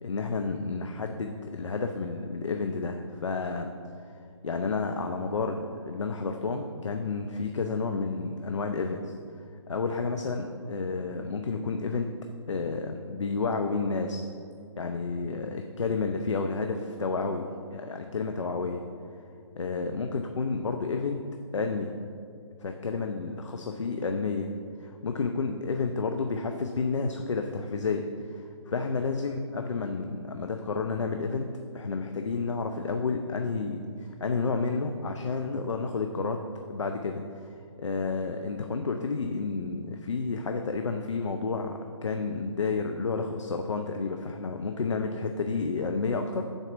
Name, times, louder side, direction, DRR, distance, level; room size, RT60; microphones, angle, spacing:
voice 1, 0.0-3.7 4.4-9.1 9.7-12.1 12.5-14.2 14.8-18.8 19.6-21.2 21.5-21.9 22.6-24.5 24.8-28.1 28.3-31.5 31.7-46.5, left 4 dB, 75° left, 5 dB, 0.5 m, -31 dB
6.7 x 4.2 x 6.0 m, 2.4 s
figure-of-eight pair, 145°, 15 cm